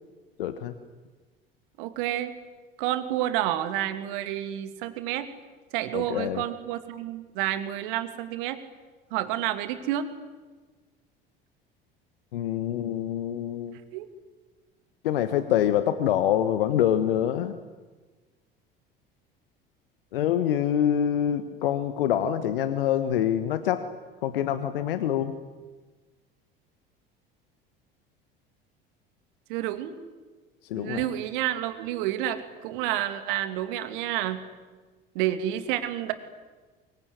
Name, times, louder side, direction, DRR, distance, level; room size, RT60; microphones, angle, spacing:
voice 1, 0.4-0.7 5.9-6.4 12.3-13.8 15.0-17.5 20.1-23.9 24.2-25.3 30.7-31.1, left 10 dB, 70° left, 11 dB, 1.4 m, -25 dB
voice 2, 1.8-2.3 2.8-5.3 5.7-8.6 9.1-10.1 13.9-14.1 29.5-30.0 30.7-34.4 35.1-36.1, right 12 dB, 60° right, 10 dB, 2.6 m, -29 dB
24.5 x 23.0 x 9.7 m, 1.3 s
figure-of-eight pair, 65°, 29 cm